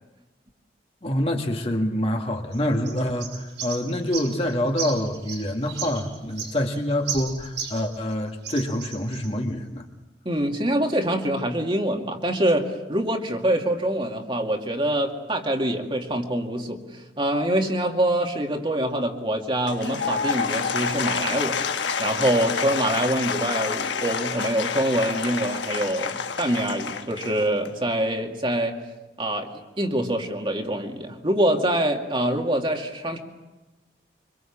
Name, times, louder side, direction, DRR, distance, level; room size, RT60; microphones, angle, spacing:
voice 1, 1.0-9.8, left 1 dB, 35° left, 2 dB, 2.2 m, -26 dB
sound 1, 2.5-8.1 8.4-9.3, right 7 dB, 85° right, 7.1 m, -35 dB
voice 2, 10.2-16.8 17.2-21.6 22.0-28.8 29.2-29.5 29.8-33.2, right 1 dB, 30° right, 2 dB, 2.4 m, -25 dB
Applause / Crowd, 19.6-27.8, left 6 dB, 85° left, 1.2 m, -28 dB
25.5 x 25.5 x 7.4 m, 1.1 s
head